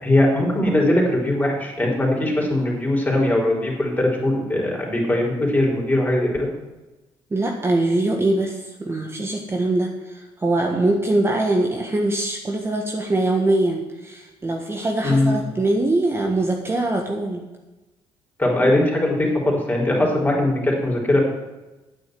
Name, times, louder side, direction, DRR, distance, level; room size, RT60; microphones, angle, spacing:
voice 1, 0.0-6.5 15.0-15.5 18.4-21.2, left 1 dB, 15° left, -1 dB, 4.1 m, -20 dB
voice 2, 7.3-17.4, right 2 dB, 25° right, 1 dB, 1.5 m, -22 dB
9.3 x 6.8 x 7.8 m, 1.1 s
supercardioid pair, 80°, 11 cm